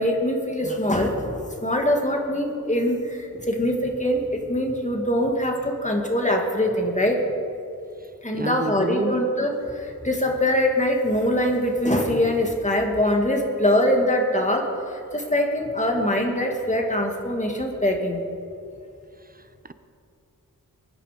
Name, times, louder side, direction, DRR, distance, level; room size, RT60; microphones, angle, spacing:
voice 1, 0.0-7.2 8.2-18.2, left 1 dB, 20° left, 1 dB, 2.3 m, -23 dB
voice 2, 8.3-9.2, right 3 dB, 25° right, 11 dB, 0.6 m, -28 dB
23.5 x 9.8 x 5.3 m, 2.5 s
wide cardioid pair, 80°, 35 cm